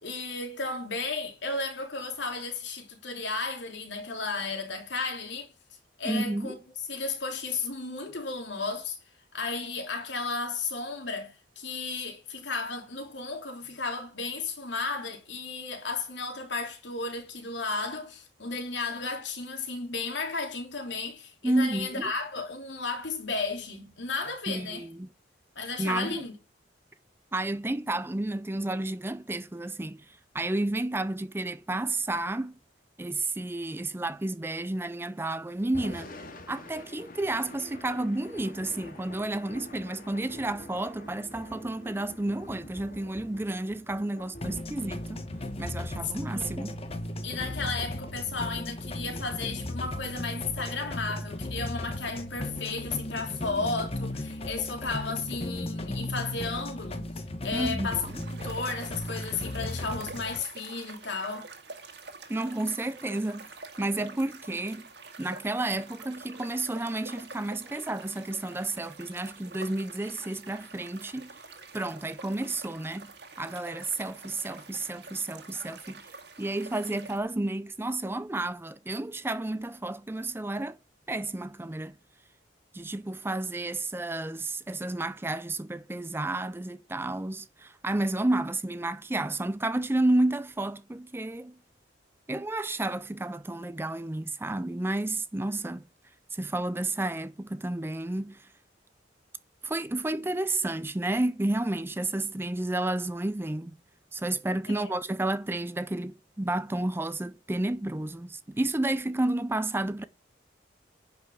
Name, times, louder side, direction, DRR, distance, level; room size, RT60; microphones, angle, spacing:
voice 1, 0.0-5.5 6.0-6.6 6.9-9.0 9.3-24.9 25.5-26.3 46.3-46.6 47.2-57.1 57.4-58.1 58.4-61.5 104.7-104.9, left 4 dB, 70° left, 3.1 m, -34 dB
voice 2, 6.0-6.6 21.4-22.1 24.5-25.1 25.8-26.2 27.3-32.6 33.0-36.1 36.5-45.2 45.6-46.8 57.5-58.2 62.3-63.5 63.8-64.9 65.2-71.4 71.7-76.1 76.4-80.8 81.1-81.9 82.7-91.5 92.3-95.8 96.3-98.5 99.6-103.7 104.1-110.0, right 2 dB, 10° right, 0.5 m, -31 dB
Thunder / Rain, 35.6-51.9, left 1 dB, 45° left, 2.1 m, -48 dB
sound 1, 44.4-60.4, left 1 dB, 30° left, 1.1 m, -36 dB
sound 2, 58.1-77.2, right 3 dB, 60° right, 2.0 m, -47 dB
10.5 x 5.5 x 7.2 m
head